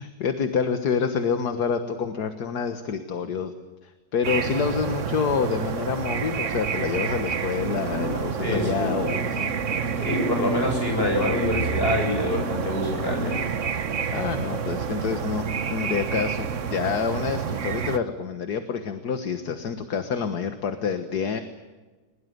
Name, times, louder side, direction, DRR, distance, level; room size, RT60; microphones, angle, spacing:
voice 1, 0.0-3.5 3.8-9.5 14.1-21.4, left 6 dB, 65° left, 8 dB, 1.9 m, -27 dB
sound 1, 4.2-18.0, right 6 dB, 50° right, 1.3 m, -28 dB
voice 2, 8.4-8.9 10.0-13.5, left 1 dB, 30° left, 2 dB, 7.9 m, -26 dB
21.5 x 21.5 x 9.5 m, 1.3 s
omnidirectional pair, 1.9 m